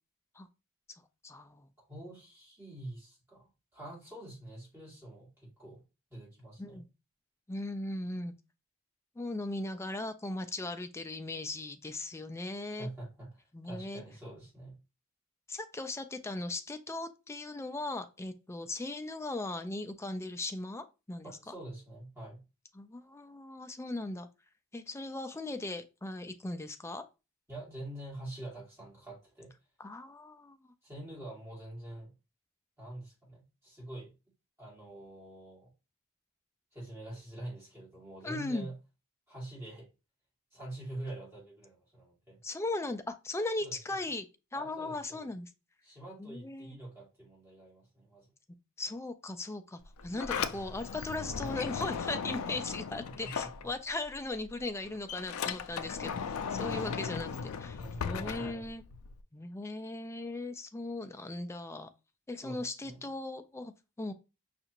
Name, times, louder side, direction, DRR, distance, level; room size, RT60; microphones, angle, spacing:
voice 1, 1.2-1.7 6.6-6.9 7.5-8.3 9.2-12.9 13.5-14.0 15.5-21.5 22.7-24.3 24.7-27.0 29.8-30.7 38.2-38.7 42.4-44.3 44.5-45.5 46.2-46.7 48.8-56.2 56.5-58.8 59.3-61.9 62.3-63.7 64.0-64.1, left 2 dB, 15° left, 0.3 m, -38 dB
voice 2, 1.8-3.5 3.7-5.3 5.6-5.8 6.1-6.8 12.8-14.8 21.2-22.4 27.5-29.5 30.8-32.1 32.8-34.1 34.6-35.7 36.7-38.8 39.3-39.9 40.5-42.4 43.6-44.0 44.5-45.3 45.8-48.3 53.0-53.7 56.6-57.1 57.8-58.7 62.4-63.1, right 1 dB, 10° right, 2.2 m, -46 dB
Sliding door, 49.8-54.2 54.5-59.2, left 6 dB, 85° left, 0.4 m, -37 dB
5.3 x 2.4 x 2.9 m
head